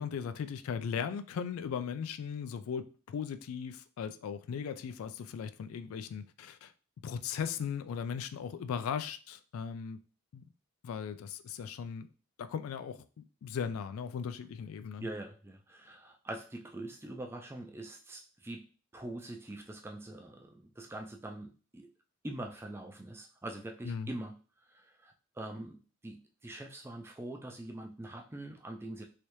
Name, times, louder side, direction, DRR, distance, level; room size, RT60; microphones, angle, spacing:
voice 1, 0.0-6.7 7.0-10.0 10.3-10.4 10.8-12.1 12.4-13.1 13.4-15.1 23.8-24.1, left 7 dB, 80° left, 0.3 m, -38 dB
voice 2, 15.0-18.7 18.9-21.9 22.2-24.3 24.7-29.0, right 1 dB, 10° right, 0.3 m, -43 dB
3.2 x 2.7 x 3.0 m
head